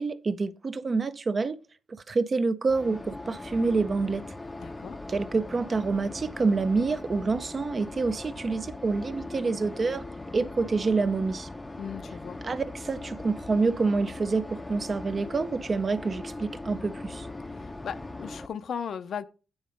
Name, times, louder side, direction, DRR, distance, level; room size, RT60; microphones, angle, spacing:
voice 1, 0.0-1.6 1.9-4.2 5.1-10.0 10.3-11.5 12.4-17.3, right 4 dB, 35° right, 0.5 m, -27 dB
sound 1, 2.7-18.5, left 2 dB, 15° left, 0.5 m, -40 dB
voice 2, 4.6-5.0 11.8-12.4 17.5-19.3, left 7 dB, 60° left, 0.5 m, -37 dB
8.6 x 3.7 x 5.1 m
cardioid pair, 100°, 0 cm